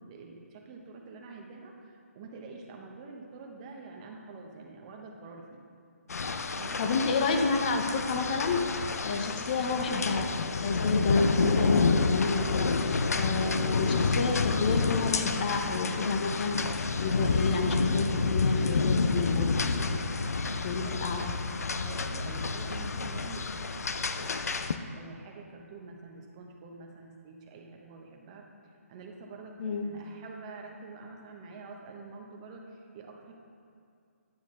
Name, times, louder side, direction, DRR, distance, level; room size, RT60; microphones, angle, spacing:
voice 1, 0.0-5.6 6.5-7.0 19.9-21.4 21.8-24.5 24.9-28.5 28.9-33.3, right 3 dB, 25° right, 1 dB, 0.9 m, -47 dB
sound 1, 6.1-24.8, left 4 dB, 80° left, 0.5 m, -29 dB
voice 2, 6.8-10.3 10.6-19.9 20.6-21.3 29.6-29.8, left 4 dB, 35° left, 4 dB, 0.8 m, -30 dB
9.7 x 7.2 x 3.7 m, 2.4 s
hypercardioid pair, 160°, 8 cm